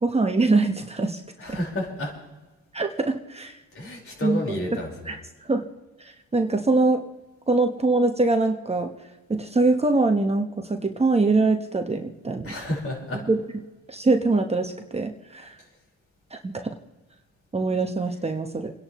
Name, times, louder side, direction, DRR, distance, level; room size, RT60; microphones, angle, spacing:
voice 1, 0.0-1.2 1.5-1.6 2.7-3.6 4.2-4.4 4.7-4.8 5.1-5.2 5.4-5.7 6.3-7.1 7.5-8.9 9.3-12.5 13.3-13.4 13.9-15.5 16.3-16.7 17.5-18.7, right 3 dB, 20° right, 4 dB, 1.2 m, -23 dB
voice 2, 1.4-2.1 3.7-5.2 12.4-13.2 15.6-15.7, left 1 dB, 45° left, -1 dB, 4.9 m, -31 dB
30.0 x 10.5 x 3.1 m, 1.2 s
cardioid pair, 90°, 30 cm